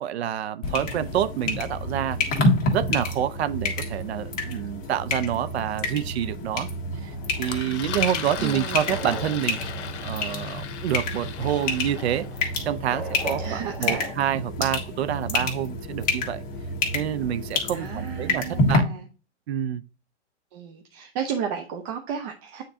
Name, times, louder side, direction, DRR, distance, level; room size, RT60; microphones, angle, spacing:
voice 1, 0.0-2.2 2.7-6.7 7.0-9.6 10.0-12.3 12.6-16.4 16.9-18.8 19.5-19.9, right 10 dB, 60° right, 0.6 m, -27 dB
sound 1, 0.6-18.8, left 2 dB, 25° left, 1.6 m, -29 dB
sound 2, 6.9-14.2, left 1 dB, ahead, 1.1 m, -41 dB
Engine, 7.4-12.7, left 8 dB, 65° left, 1.0 m, -37 dB
voice 2, 8.4-9.0 13.4-14.1 17.7-19.1 20.5-22.6, right 7 dB, 35° right, 0.8 m, -33 dB
9.0 x 3.8 x 2.8 m
hypercardioid pair, 130°, 36 cm